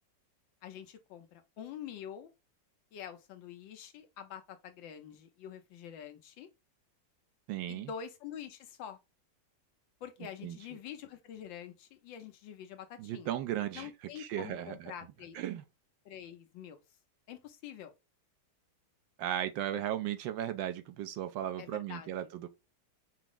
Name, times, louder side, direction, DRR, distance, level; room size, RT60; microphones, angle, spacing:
voice 1, 0.6-2.3 2.9-6.5 7.7-9.0 10.0-13.4 13.7-15.4 16.0-16.8 17.3-17.9 21.6-22.3, left 9 dB, 85° left, 1.5 m, -46 dB
voice 2, 7.5-7.9 10.4-10.6 13.0-13.9 14.2-14.9 15.3-15.6 19.2-22.5, right 11 dB, 90° right, 1.4 m, -36 dB
5.7 x 2.0 x 3.7 m
omnidirectional pair, 2.0 m